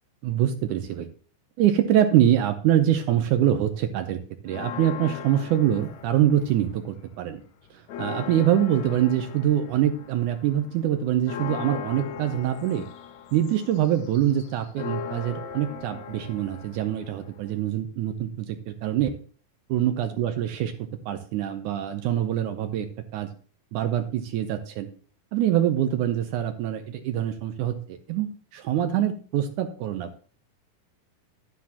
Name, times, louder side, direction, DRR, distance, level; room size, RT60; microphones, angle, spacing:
voice 1, 0.2-1.1 1.6-7.4 7.7-12.9 13.3-19.1 19.7-20.7 21.1-22.9 23.1-23.3 23.7-24.9 25.3-30.2, right 11 dB, 75° right, 8 dB, 1.9 m, -24 dB
Church bell, 4.5-6.8 7.2-7.3 7.6-17.7, left 8 dB, 75° left, 1.7 m, -39 dB
11.5 x 9.5 x 2.8 m, 0.40 s
omnidirectional pair, 4.1 m